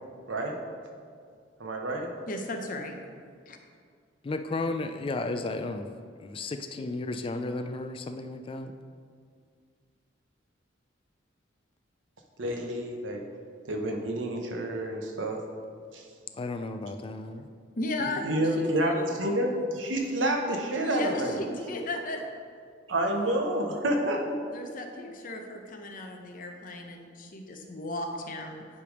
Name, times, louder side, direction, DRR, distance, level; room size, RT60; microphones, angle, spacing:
voice 1, 1.6-2.1 12.4-13.3 13.7-15.4 15.9-16.1 18.0-21.4 22.9-24.4, right 1 dB, 85° right, 2 dB, 1.0 m, -29 dB
voice 2, 2.3-3.0 3.5-3.6 17.8-19.1 20.7-22.2 24.5-28.7, left 2 dB, 45° left, 3 dB, 0.7 m, -35 dB
voice 3, 4.2-5.9 6.2-8.7 16.3-17.5, left 2 dB, 30° left, 8 dB, 0.3 m, -33 dB
9.6 x 3.4 x 5.0 m, 2.1 s
head